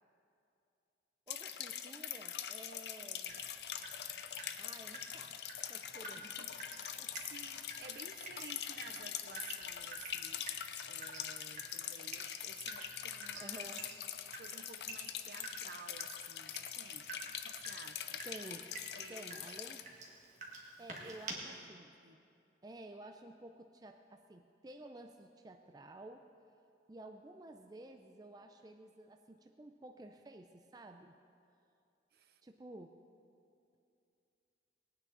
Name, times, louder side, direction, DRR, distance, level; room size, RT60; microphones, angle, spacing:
sound 1, 1.3-19.8, left 10 dB, 65° left, 0.6 m, -44 dB
voice 1, 1.3-3.5 4.6-5.4 5.7-6.3 7.0-7.1 13.4-13.8 17.8-18.7 19.1-19.9 20.8-21.9 22.6-26.2 26.9-31.2 32.4-32.9, right 1 dB, 20° right, 5 dB, 0.4 m, -52 dB
Water tap faucet / Drip, 3.3-21.3, right 3 dB, 40° right, 1.7 m, -51 dB
voice 2, 6.8-10.4 10.9-13.9 14.2-17.1 17.4-18.2 19.0-19.5 20.9-21.7 22.0-22.2 32.1-32.4, right 5 dB, 55° right, 9 dB, 0.6 m, -54 dB
20.0 x 9.3 x 3.9 m, 2.6 s
head